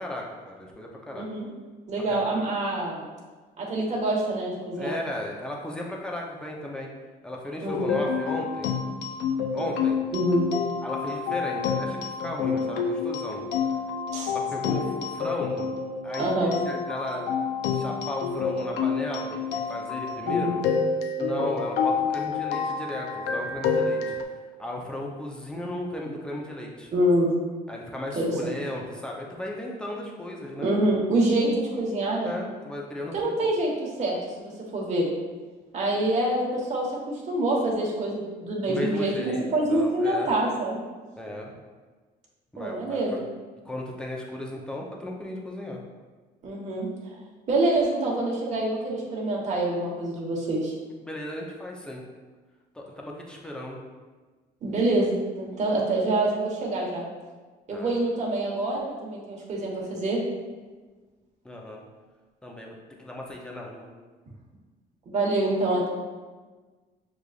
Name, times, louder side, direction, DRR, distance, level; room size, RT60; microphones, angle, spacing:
voice 1, 0.0-1.3 2.1-2.2 4.8-6.9 7.2-8.7 9.5-10.0 10.8-13.4 14.2-15.7 16.0-17.3 17.7-20.6 21.2-24.2 24.6-26.9 27.7-30.7 32.2-33.6 38.7-39.4 39.7-40.3 41.2-41.5 42.5-43.2 43.6-45.8 51.0-52.0 52.7-53.8 57.7-57.9 61.4-61.8 62.4-63.9, left 1 dB, 5° left, -1 dB, 0.7 m, -35 dB
voice 2, 1.1-1.5 1.9-3.0 3.6-5.0 7.6-8.0 10.1-10.4 14.1-14.3 16.2-16.5 20.2-20.6 26.9-27.3 28.1-28.5 30.6-32.3 33.1-35.1 35.7-40.8 42.6-43.2 46.4-47.1 47.5-50.7 54.6-57.0 57.7-60.2 65.1-65.9, right 1 dB, 45° right, -3 dB, 1.2 m, -26 dB
sound 1, 7.7-24.2, left 5 dB, 85° left, 0.4 m, -28 dB
6.5 x 2.5 x 2.4 m, 1.3 s
cardioid pair, 110°, 17 cm